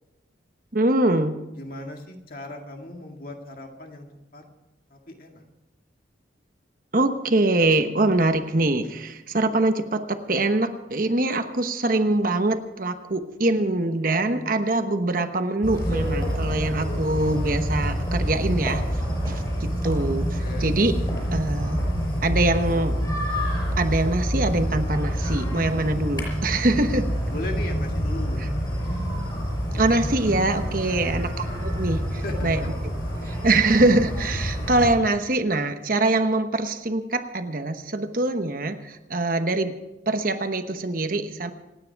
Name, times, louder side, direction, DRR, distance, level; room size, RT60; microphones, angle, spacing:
voice 1, 0.7-1.4 6.9-19.0 19.3-20.9 21.3-21.8 22.2-23.0 23.8-27.1 29.7-32.6 33.2-39.8 40.1-41.5, right 2 dB, 45° right, 7 dB, 1.0 m, -24 dB
voice 2, 1.6-4.1 4.3-4.4 4.9-5.4 20.4-20.7 27.3-28.4 30.9-31.3 32.2-32.7, left 1 dB, 50° left, 2 dB, 2.1 m, -37 dB
sound 1, 15.6-35.0, equal, 20° left, 5.6 m, -27 dB
27.5 x 9.6 x 4.7 m, 0.99 s
head